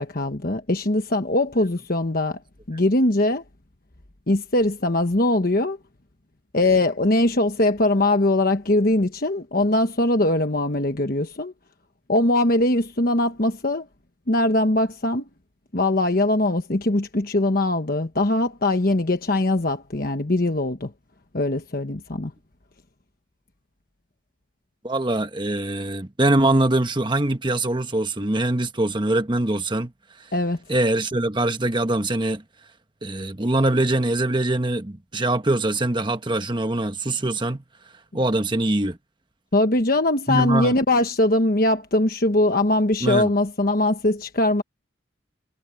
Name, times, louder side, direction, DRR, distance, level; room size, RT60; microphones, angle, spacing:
voice 1, 0.0-2.4 2.7-3.4 4.3-5.8 6.5-11.5 12.1-13.9 14.3-15.2 15.7-20.9 21.3-22.3 30.3-30.6 39.5-44.6, left 1 dB, 50° left, 1.2 m, -21 dB
voice 2, 24.8-29.9 30.7-32.4 33.0-37.6 38.1-39.0 40.3-40.8 43.0-43.3, right 2 dB, 25° right, 1.2 m, -23 dB
head